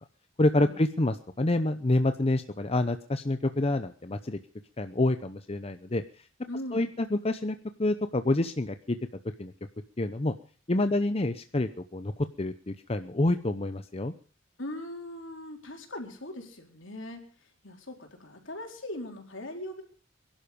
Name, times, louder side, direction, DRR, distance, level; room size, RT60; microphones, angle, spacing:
voice 1, 0.4-4.4 4.8-6.0 6.7-9.0 9.4-9.5 10.0-10.3 10.7-14.1, left 2 dB, 30° left, 9 dB, 0.7 m, -27 dB
voice 2, 6.5-6.9 10.8-11.0 14.6-17.2 17.6-19.8, left 1 dB, 70° left, 3 dB, 4.1 m, -40 dB
22.5 x 11.5 x 5.2 m, 0.41 s
head